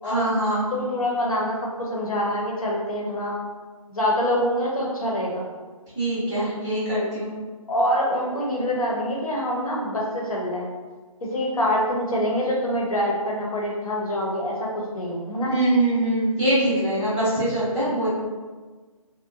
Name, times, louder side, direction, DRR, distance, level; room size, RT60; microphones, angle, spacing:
voice 1, 0.0-0.7 5.9-7.3 15.5-18.1, right 1 dB, ahead, -34 dB, 0.3 m, -23 dB
voice 2, 0.7-3.4 3.9-5.5 7.7-10.7 11.3-14.6 14.9-15.5, equal, 75° left, -3 dB, 0.9 m, -25 dB
2.7 x 2.2 x 2.5 m, 1.4 s
figure-of-eight pair, 160°, 18 cm